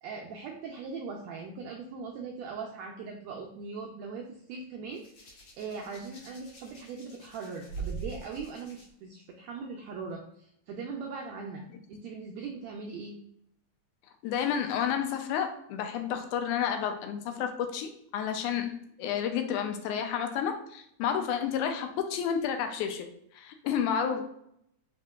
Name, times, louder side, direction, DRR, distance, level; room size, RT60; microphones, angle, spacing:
voice 1, 0.0-13.2, right 5 dB, 85° right, 0 dB, 1.5 m, -40 dB
Hands, 4.9-8.9 9.9-10.1, right 4 dB, 60° left, 1.6 m, -43 dB
voice 2, 14.2-23.1 23.3-24.2, left 8 dB, 80° left, 6 dB, 1.9 m, -31 dB
5.0 x 3.6 x 2.3 m, 0.73 s
omnidirectional pair, 3.6 m